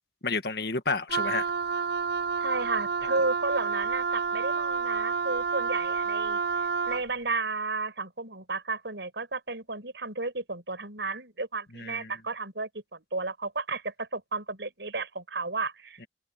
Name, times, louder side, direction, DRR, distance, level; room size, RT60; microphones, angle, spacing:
voice 1, 0.2-1.4 1.7-1.8 11.7-12.1, left 4 dB, 65° left, 1.7 m, -30 dB
Wind instrument woodwind instrument, 1.1-7.1, right 5 dB, 65° right, 0.7 m, -29 dB
voice 2, 2.4-6.4 6.9-16.1, right 3 dB, 80° right, 5.5 m, -33 dB
open air
head